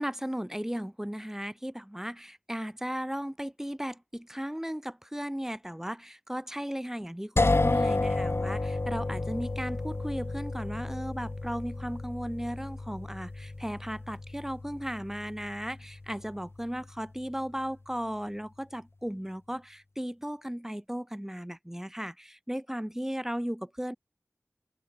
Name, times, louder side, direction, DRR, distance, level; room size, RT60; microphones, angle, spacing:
voice 1, 0.0-24.0, equal, 10° right, 1.3 m, -36 dB
sound 1, 7.4-17.1, left 2 dB, 55° left, 1.1 m, -32 dB
wide cardioid pair, 50°, 5 cm